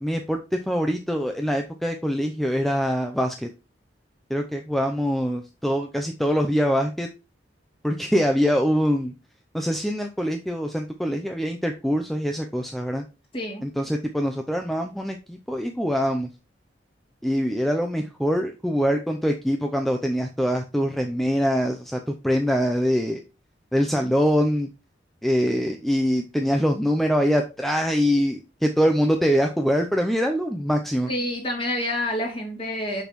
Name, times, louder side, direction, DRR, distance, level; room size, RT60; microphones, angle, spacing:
voice 1, 0.0-3.5 4.3-7.1 7.8-9.1 9.5-13.0 13.6-16.3 17.2-23.2 23.7-24.7 25.2-31.1, equal, ahead, 3 dB, 0.5 m, -24 dB
voice 2, 13.3-13.7 31.1-33.0, left 1 dB, 30° left, -1 dB, 2.9 m, -28 dB
6.7 x 6.2 x 3.1 m, 0.30 s
head